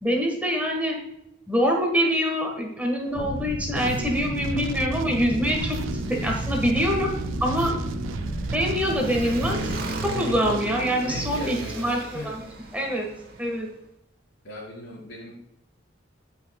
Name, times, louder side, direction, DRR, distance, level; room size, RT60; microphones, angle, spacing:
voice 1, 0.0-1.0 1.5-5.8 6.1-7.1 7.4-7.7 8.5-9.7 10.0-12.4 12.7-13.1 13.4-13.7, equal, 10° right, 0 dB, 1.4 m, -25 dB
Motorcycle, 3.0-13.7, right 2 dB, 50° right, 1.3 m, -39 dB
sound 1, 3.1-9.8, equal, 80° left, 2.3 m, -32 dB
sound 2, 3.7-12.6, right 4 dB, 80° right, 0.4 m, -34 dB
voice 2, 11.0-12.3 14.4-15.3, left 1 dB, 55° left, -10 dB, 2.9 m, -38 dB
16.5 x 5.8 x 2.3 m, 0.81 s
head